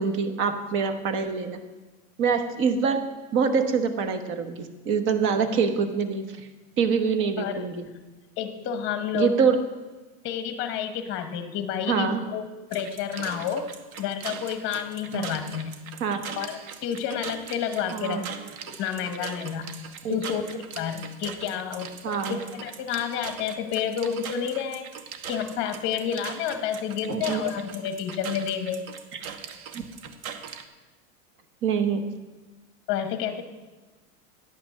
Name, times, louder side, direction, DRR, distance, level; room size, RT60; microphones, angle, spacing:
voice 1, 0.0-1.6 2.2-3.0 3.3-6.5 6.8-7.9 9.1-9.6 11.9-12.2 15.1-15.2 16.0-16.2 17.9-18.3 20.0-20.2 22.0-22.4 27.0-27.4 29.1-29.2 29.7-29.8 31.6-32.0, right 6 dB, 30° right, 8 dB, 1.1 m, -25 dB
voice 2, 7.4-7.7 8.4-9.4 10.2-13.7 14.0-15.7 16.3-18.2 18.7-19.7 20.1-20.4 20.7-24.9 25.3-28.8 32.9-33.4, left 8 dB, 30° left, 8 dB, 1.0 m, -30 dB
sound 1, 12.7-30.6, right 7 dB, 85° right, 1.3 m, -40 dB
11.0 x 5.9 x 8.5 m, 1.2 s
supercardioid pair, 155°, 42 cm